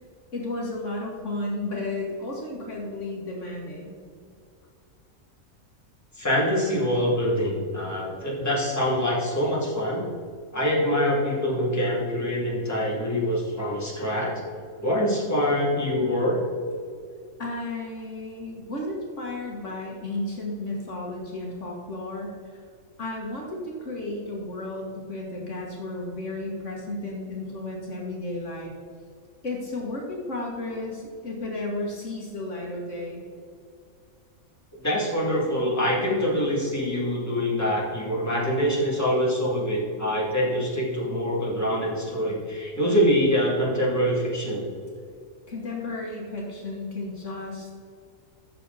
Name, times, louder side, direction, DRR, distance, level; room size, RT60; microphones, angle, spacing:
voice 1, 0.3-4.0 17.4-22.6 23.0-28.7 29.4-33.2 45.5-47.7, left 2 dB, 60° left, -1 dB, 1.7 m, -33 dB
voice 2, 6.2-10.0 10.5-14.4 14.8-16.4 34.8-44.6, equal, 10° left, -5 dB, 2.5 m, -25 dB
14.5 x 6.7 x 4.0 m, 2.3 s
omnidirectional pair, 1.4 m